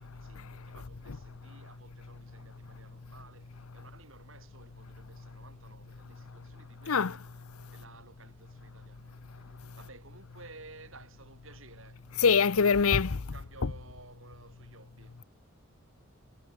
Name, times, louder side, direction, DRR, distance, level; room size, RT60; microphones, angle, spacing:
voice 1, 0.0-7.4 7.7-12.1 12.9-15.2, right 3 dB, 65° right, 7.7 m, -55 dB
voice 2, 12.2-13.2, left 5 dB, 85° left, 0.8 m, -23 dB
head